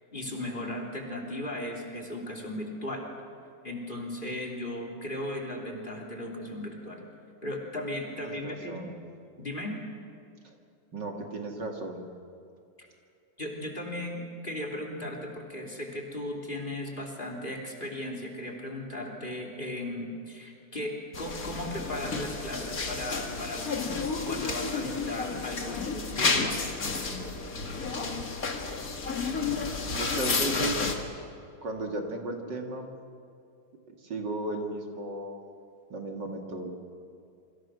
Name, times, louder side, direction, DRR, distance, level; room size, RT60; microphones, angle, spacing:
voice 1, 0.1-3.1 3.6-7.0 7.4-8.8 9.4-9.8 12.8-12.9 13.4-23.8 24.3-26.6, left 1 dB, 25° left, 2 dB, 3.4 m, -36 dB
voice 2, 8.2-8.9 10.4-10.6 10.9-12.1 29.2-30.9 31.6-32.9 33.9-35.4 35.9-36.7, right 2 dB, 65° right, 2 dB, 2.9 m, -36 dB
sound 1, 21.1-30.9, left 4 dB, 50° left, 2.4 m, -31 dB
27.5 x 25.0 x 6.3 m, 2.5 s
omnidirectional pair, 2.0 m